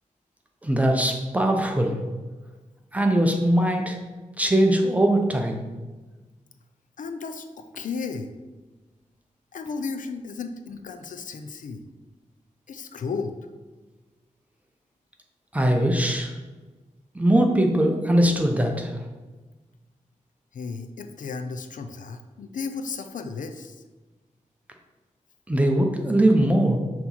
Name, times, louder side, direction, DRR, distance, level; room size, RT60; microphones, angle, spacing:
voice 1, 0.6-2.0 2.9-4.0 4.4-5.6 15.5-16.3 17.1-18.9 25.5-26.8, right 1 dB, 10° right, 2 dB, 0.7 m, -21 dB
voice 2, 7.0-8.3 9.5-11.9 12.7-13.3 20.5-23.8, left 4 dB, 80° left, 7 dB, 0.5 m, -34 dB
6.2 x 3.0 x 5.5 m, 1.2 s
wide cardioid pair, 145°, 13 cm